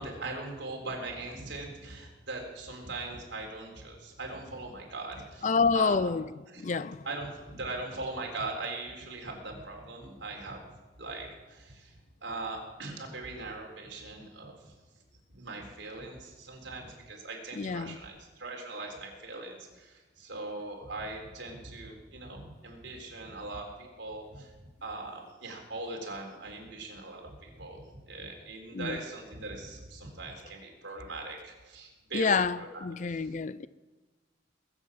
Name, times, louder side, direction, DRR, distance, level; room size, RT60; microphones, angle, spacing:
voice 1, 0.0-6.1 6.5-6.6 7.0-10.6 11.0-14.7 15.3-24.5 24.8-33.3, right 2 dB, 70° right, 4.0 m, -40 dB
voice 2, 5.4-6.2 6.6-7.0 17.5-18.0 28.7-29.0 32.1-33.7, left 5 dB, 40° left, 0.4 m, -28 dB
21.0 x 8.1 x 7.4 m
head